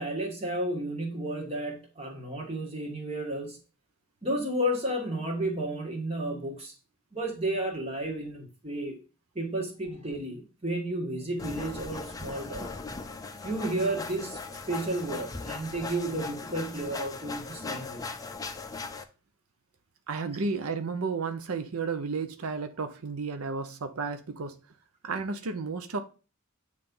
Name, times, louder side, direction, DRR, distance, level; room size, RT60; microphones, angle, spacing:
voice 1, 0.0-3.6 4.2-6.7 7.1-9.0 9.4-12.7 13.4-14.4 14.7-18.0, right 1 dB, 30° right, 1.8 m, -32 dB
sound 1, 11.4-19.0, left 4 dB, 15° left, 0.5 m, -39 dB
voice 2, 20.1-24.6 25.0-26.0, right 4 dB, 90° right, 0.7 m, -32 dB
8.8 x 3.3 x 5.4 m
head